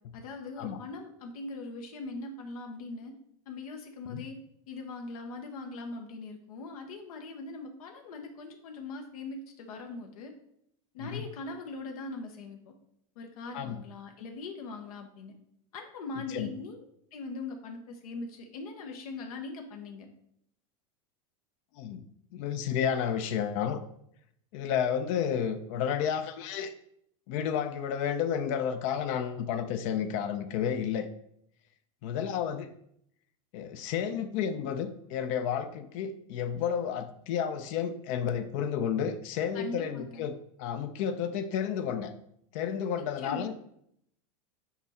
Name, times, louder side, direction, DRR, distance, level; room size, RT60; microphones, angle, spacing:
voice 1, 0.1-3.1 3.5-4.4 4.7-10.3 10.9-12.7 13.2-15.3 15.7-16.8 17.1-20.1 39.5-40.3 43.0-43.5, left 3 dB, 85° left, 4 dB, 0.9 m, -41 dB
voice 2, 22.3-23.8 24.5-26.7 27.3-31.1 32.0-32.7 33.5-40.3 40.6-42.1 42.5-43.5, left 8 dB, 60° left, 9 dB, 0.6 m, -31 dB
6.0 x 4.1 x 4.2 m, 0.72 s
supercardioid pair, 125°, 18 cm